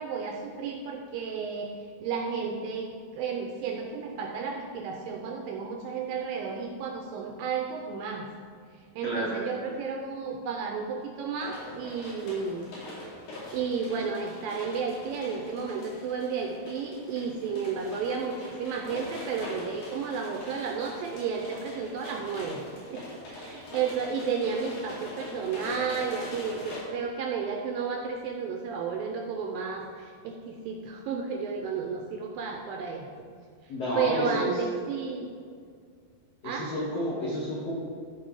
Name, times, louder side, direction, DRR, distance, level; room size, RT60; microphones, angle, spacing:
voice 1, 0.0-1.7 2.0-8.3 8.7-12.7 13.5-33.3 33.6-35.4 36.4-36.7, right 5 dB, 80° right, 2 dB, 2.2 m, -32 dB
voice 2, 9.0-9.4 33.7-34.5 36.4-37.7, equal, 60° left, -6 dB, 1.8 m, -30 dB
sound 1, 11.4-26.8, left 1 dB, 80° left, 4.5 m, -43 dB
13.5 x 4.8 x 4.8 m, 2.1 s
omnidirectional pair, 4.6 m